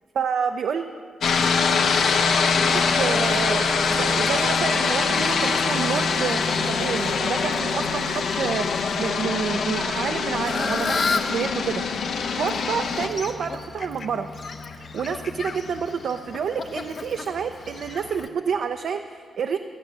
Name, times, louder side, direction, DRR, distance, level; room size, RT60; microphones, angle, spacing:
voice 1, 0.1-0.8 2.9-8.7 9.0-11.8 12.3-14.3 14.7-19.6, right 6 dB, 70° right, 6 dB, 0.5 m, -28 dB
sound 1, 1.2-13.1, left 5 dB, 75° left, 1.0 m, -23 dB
Fowl, 1.9-18.3, left 4 dB, 50° left, 0.8 m, -36 dB
13.5 x 9.3 x 7.5 m, 2.2 s
cardioid pair, 105°, 0 cm